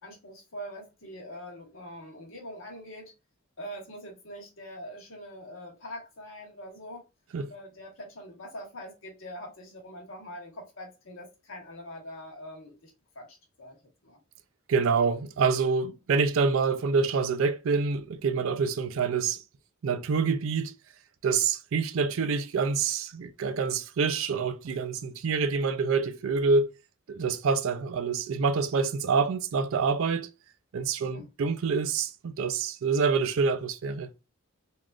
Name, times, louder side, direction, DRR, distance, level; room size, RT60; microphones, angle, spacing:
voice 1, 0.0-3.1 3.6-7.0 7.5-14.2 31.0-31.3, equal, 75° left, 1.2 m, -43 dB
voice 2, 14.7-19.4 19.8-20.7 21.2-26.7 27.1-30.3 30.7-34.1, right 5 dB, 75° right, 0.4 m, -26 dB
3.5 x 2.4 x 2.4 m
head